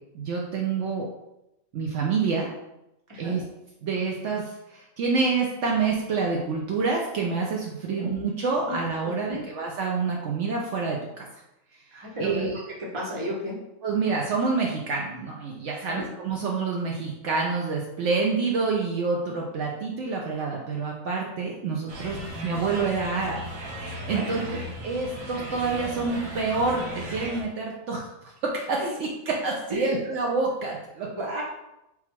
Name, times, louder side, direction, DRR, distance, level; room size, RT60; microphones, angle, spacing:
voice 1, 0.1-1.1 1.7-2.5 3.2-3.4 3.8-11.3 12.2-12.6 13.8-23.4 24.1-31.1, right 4 dB, 70° right, -1 dB, 0.8 m, -27 dB
voice 2, 11.9-12.5 12.9-13.6 15.7-16.0 24.1-24.6 28.8-28.9 29.7-29.9 31.1-31.4, equal, 25° right, -4 dB, 0.9 m, -33 dB
sound 1, 21.9-27.4, right 1 dB, 85° right, 1.1 m, -36 dB
3.6 x 2.3 x 4.4 m, 0.89 s
omnidirectional pair, 1.4 m